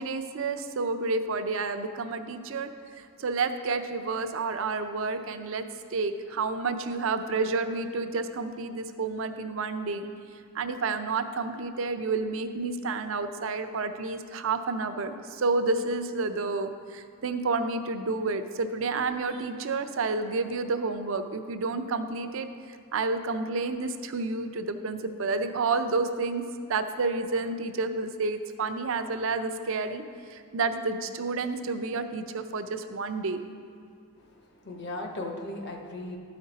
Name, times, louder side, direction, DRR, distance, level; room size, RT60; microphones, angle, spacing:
voice 1, 0.0-2.7 3.2-5.7 5.9-10.1 10.5-22.5 22.9-26.4 26.7-30.0 30.3-33.4, right 3 dB, 65° right, 8 dB, 0.5 m, -30 dB
voice 2, 34.2-36.2, left 2 dB, 50° left, 2 dB, 0.9 m, -37 dB
12.5 x 5.1 x 4.0 m, 2.3 s
head